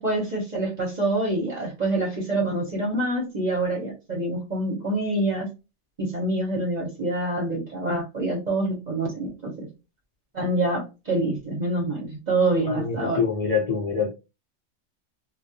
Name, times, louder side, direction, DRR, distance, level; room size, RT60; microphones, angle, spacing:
voice 1, 0.0-5.5 6.0-9.7 10.3-13.2, right 2 dB, 40° right, -1 dB, 0.8 m, -26 dB
voice 2, 12.7-14.1, left 5 dB, 40° left, -2 dB, 0.5 m, -25 dB
2.3 x 2.0 x 2.7 m, 0.28 s
omnidirectional pair, 1.3 m